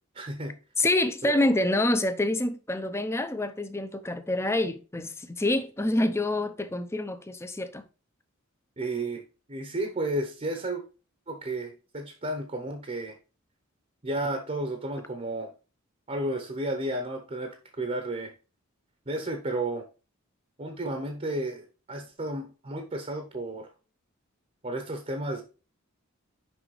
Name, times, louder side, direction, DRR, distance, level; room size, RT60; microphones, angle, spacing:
voice 1, 0.1-0.6 1.2-1.5 8.8-9.2 9.5-10.8 11.3-13.2 14.0-15.5 16.1-18.3 19.1-19.9 20.6-23.7 24.6-25.4, right 1 dB, 30° right, 0.8 m, -32 dB
voice 2, 0.8-7.8, left 1 dB, 10° left, 0.5 m, -27 dB
6.2 x 5.1 x 3.2 m
head